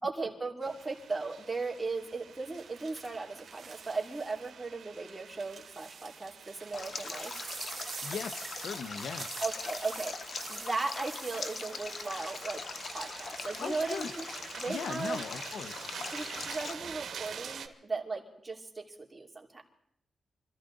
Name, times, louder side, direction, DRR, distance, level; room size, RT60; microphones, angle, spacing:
voice 1, 0.0-7.4 9.4-12.6 12.9-14.2 14.6-15.2 16.1-19.6, right 3 dB, 20° right, 0 dB, 2.7 m, -37 dB
sound 1, 0.6-17.7, right 7 dB, 80° right, 1.3 m, -47 dB
sound 2, 0.9-1.3 2.6-4.5 5.0-14.3 14.7-15.1, right 5 dB, 55° right, 2.1 m, -47 dB
Stream, 6.7-16.7, left 4 dB, 55° left, 1.0 m, -41 dB
voice 2, 8.0-9.3 13.6-14.1 14.7-15.9, left 6 dB, 85° left, 12 dB, 0.8 m, -39 dB
25.0 x 14.0 x 3.9 m, 0.73 s
cardioid pair, 100°, 0 cm